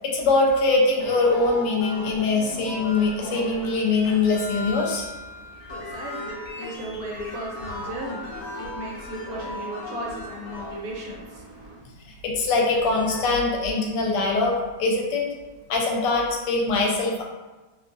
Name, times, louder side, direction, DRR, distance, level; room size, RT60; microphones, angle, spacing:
voice 1, 0.0-5.1 12.2-15.2 15.7-17.2, left 3 dB, 85° left, -1 dB, 1.2 m, -22 dB
sound 1, 1.0-11.5 12.5-13.3, left 1 dB, 65° left, 0.9 m, -37 dB
voice 2, 5.0-11.8, right 1 dB, 70° right, -3 dB, 1.0 m, -36 dB
2.8 x 2.3 x 2.5 m, 1.2 s
omnidirectional pair, 1.8 m